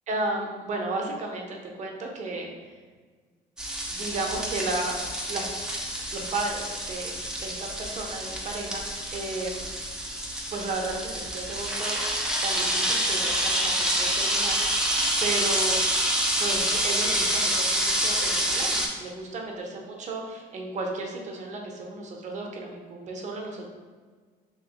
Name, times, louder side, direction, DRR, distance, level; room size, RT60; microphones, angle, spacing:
voice 1, 0.1-2.5 3.9-4.9 5.3-5.5 6.1-9.8 10.5-12.0 12.4-14.6 15.2-15.8 16.4-19.7 20.1-23.6, right 2 dB, 45° right, 1 dB, 0.6 m, -33 dB
sound 1, 3.6-18.9, right 1 dB, 5° right, 0.4 m, -27 dB
2.9 x 2.7 x 2.8 m, 1.5 s
cardioid pair, 110°, 17 cm